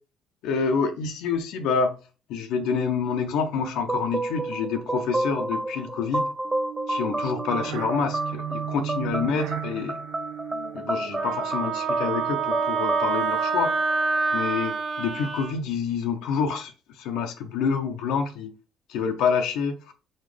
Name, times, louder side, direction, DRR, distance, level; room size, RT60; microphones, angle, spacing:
voice 1, 0.4-2.0 2.3-6.3 6.9-10.0 10.7-13.7 14.3-18.5 18.9-19.9, left 5 dB, 80° left, 0.6 m, -27 dB
sound 1, 3.8-14.4, right 1 dB, 20° right, 0.6 m, -31 dB
sound 2, 6.4-12.8, right 13 dB, 85° right, 0.3 m, -36 dB
Wind instrument woodwind instrument, 11.1-15.5, right 5 dB, 50° right, 0.9 m, -27 dB
4.2 x 3.9 x 3.2 m
supercardioid pair, 65°, 0 cm